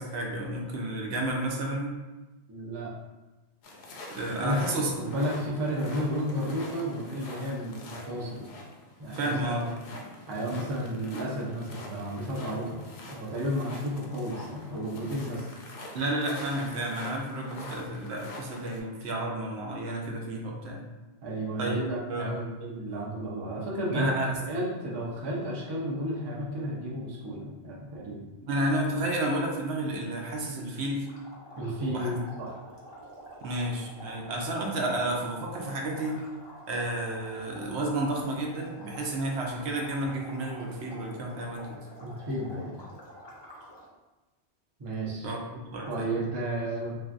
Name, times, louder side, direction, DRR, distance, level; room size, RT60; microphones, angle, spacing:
voice 1, 0.0-2.0 4.1-5.2 9.1-9.7 15.9-20.8 21.6-21.8 22.1-22.5 23.9-24.4 28.5-31.1 31.9-32.1 33.4-36.2 36.7-41.7 45.2-46.1, right 1 dB, 75° right, 0 dB, 0.8 m, -31 dB
voice 2, 2.5-2.9 4.4-8.5 9.0-9.6 10.3-15.5 21.2-28.2 31.6-32.5 42.0-42.7 44.8-45.3 45.9-47.0, equal, 35° right, -4 dB, 0.4 m, -32 dB
sound 1, 3.6-18.8, left 1 dB, 75° left, 0.8 m, -45 dB
sound 2, 31.1-43.9, equal, 35° left, 0.5 m, -47 dB
3.3 x 2.6 x 2.5 m, 1.1 s
omnidirectional pair, 1.1 m